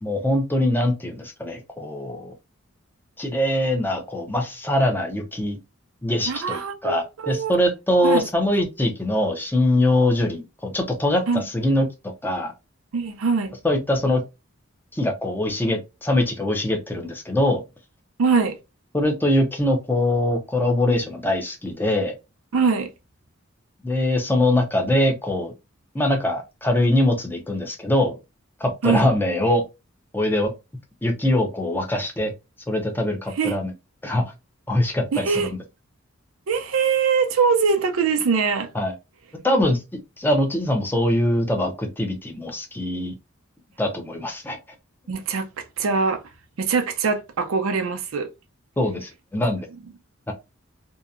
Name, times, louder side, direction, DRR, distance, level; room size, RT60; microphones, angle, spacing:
voice 1, 0.0-2.3 3.2-5.6 6.0-11.9 12.2-12.5 13.6-14.2 14.9-17.6 18.9-22.1 23.8-25.5 25.9-28.1 28.6-29.6 30.1-30.5 31.0-32.3 32.7-33.7 34.0-34.2 34.7-35.3 38.7-38.9 39.4-39.8 40.2-43.1 43.8-44.6 48.8-49.7 50.3-50.4, left 1 dB, 10° left, 0.5 m, -22 dB
voice 2, 6.3-7.5 8.0-8.3 11.3-11.4 12.9-13.6 18.2-18.6 22.5-22.9 28.8-29.1 33.3-33.6 35.1-35.5 36.5-38.7 45.1-46.2 46.6-48.3 49.4-49.5, right 5 dB, 85° right, 0.5 m, -22 dB
2.7 x 2.1 x 2.4 m
head